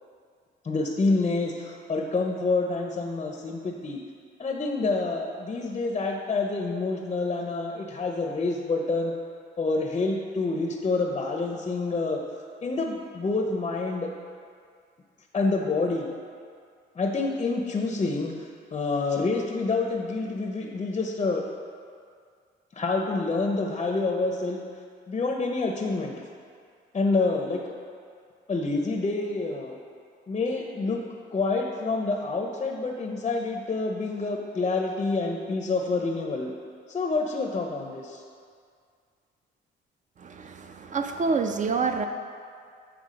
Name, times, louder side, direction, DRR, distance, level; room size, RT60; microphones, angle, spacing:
voice 1, 0.6-4.0 4.4-9.1 9.6-12.2 12.6-14.1 15.3-16.1 17.0-21.4 22.7-24.6 25.1-26.2 26.9-27.7 28.5-29.8 30.3-31.0 31.3-36.5 36.9-38.2, left 3 dB, 30° left, 2 dB, 0.5 m, -27 dB
voice 2, 40.2-42.1, right 4 dB, 40° right, 6 dB, 0.5 m, -27 dB
7.4 x 3.4 x 5.1 m, 2.2 s
cardioid pair, 90°, 20 cm